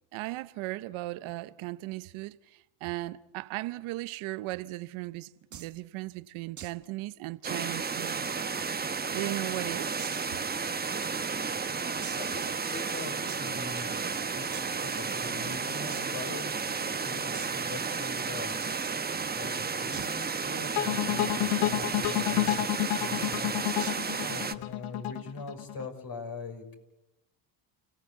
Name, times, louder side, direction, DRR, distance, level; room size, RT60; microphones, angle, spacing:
voice 1, 0.1-8.3 9.1-10.1, right 19 dB, 75° right, 0.9 m, -37 dB
sound 1, 5.5-5.8 6.6-6.8 7.1-7.2 7.6-7.7 8.3-9.1 10.0-10.4 10.9-11.0 12.0-12.5 13.3-13.5 14.5-15.0 15.9-16.0 16.3-16.4 16.7-16.8 17.3-17.6 18.6-19.0 19.9-21.0 22.5-22.8 23.8-24.2, right 8 dB, 35° right, 1.4 m, -45 dB
sound 2, 7.4-24.5, right 5 dB, 20° right, 1.1 m, -32 dB
voice 2, 12.2-13.2 13.4-13.9 14.3-18.6 19.4-22.6 22.9-23.5 23.9-26.7, left 4 dB, 45° left, 6.0 m, -43 dB
sound 3, 20.8-25.9, left 16 dB, 75° left, 1.2 m, -29 dB
29.5 x 17.0 x 8.4 m
supercardioid pair, 90°, 49 cm